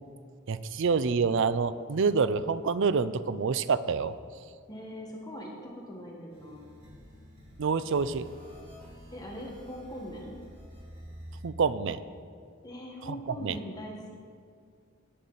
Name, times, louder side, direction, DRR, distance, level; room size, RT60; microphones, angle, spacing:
voice 1, 0.5-4.1 7.6-8.3 11.4-12.0 13.1-13.2 13.4-13.6, right 5 dB, 60° right, 14 dB, 0.5 m, -27 dB
voice 2, 4.7-6.7 9.1-10.4 12.6-14.2, equal, 20° left, -2 dB, 1.4 m, -41 dB
sound 1, 6.3-11.4, equal, 25° right, 2.8 m, -49 dB
17.5 x 8.4 x 4.0 m, 2.2 s
head